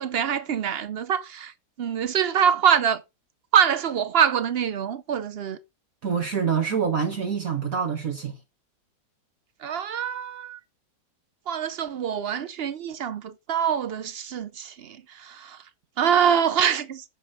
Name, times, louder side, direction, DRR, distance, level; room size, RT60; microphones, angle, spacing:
voice 1, 0.0-1.5 1.8-3.0 3.5-5.6 9.6-10.6 11.5-15.6 16.0-17.0, right 8 dB, 90° right, 0.5 m, -24 dB
voice 2, 6.0-8.4, right 7 dB, 50° right, 1.7 m, -26 dB
8.8 x 7.1 x 4.8 m
omnidirectional pair, 1.9 m